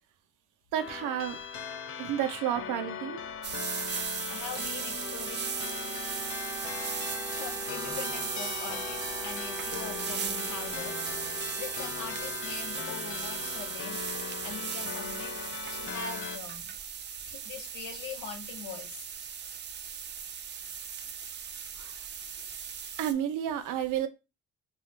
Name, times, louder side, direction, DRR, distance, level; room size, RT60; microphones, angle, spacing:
voice 1, 0.7-1.4 2.0-3.2 21.8-21.9 23.0-24.1, right 10 dB, 90° right, 0.5 m, -31 dB
sound 1, 0.8-16.4, left 7 dB, 45° left, 0.4 m, -39 dB
sound 2, 3.4-23.1, right 7 dB, 35° right, 0.4 m, -37 dB
voice 2, 4.0-5.9 6.4-6.6 7.3-11.2 11.6-15.4 15.7-16.7 17.2-19.1, left 6 dB, 85° left, 0.8 m, -43 dB
Wind instrument woodwind instrument, 5.0-12.6, right 1 dB, 10° right, 0.7 m, -44 dB
2.8 x 2.3 x 3.2 m
cardioid pair, 90°, 30 cm